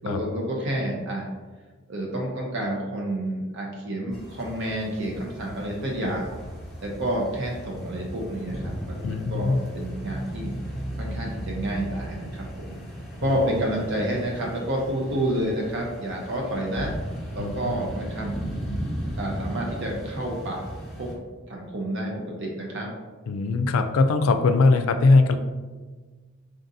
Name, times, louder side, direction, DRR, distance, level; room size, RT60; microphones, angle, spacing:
voice 1, 0.0-1.3 1.9-6.3 6.8-10.5 11.0-12.8 13.2-16.9 17.3-18.3 19.2-20.7 21.0-21.1 21.5-22.9, right 1 dB, 60° right, -1 dB, 0.6 m, -29 dB
sound 1, 4.1-21.1, equal, ahead, 0.9 m, -36 dB
voice 2, 9.0-9.6 13.2-13.4 17.4-17.5 23.3-25.4, left 3 dB, 85° left, 9 dB, 0.4 m, -20 dB
3.9 x 3.6 x 2.6 m, 1.4 s
head